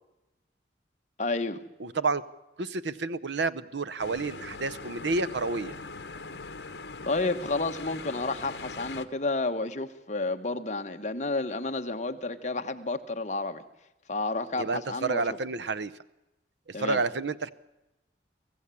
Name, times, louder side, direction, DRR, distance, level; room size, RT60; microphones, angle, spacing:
voice 1, 1.2-1.6 7.0-13.6 14.1-15.2 16.7-17.0, left 3 dB, 40° left, 6 dB, 1.3 m, -31 dB
voice 2, 1.8-2.2 2.6-5.7 14.6-15.9 16.7-17.5, right 3 dB, 75° right, 13 dB, 0.8 m, -30 dB
sound 1, 4.0-9.1, left 3 dB, 65° left, 1.3 m, -41 dB
24.5 x 15.5 x 8.4 m, 1.0 s
head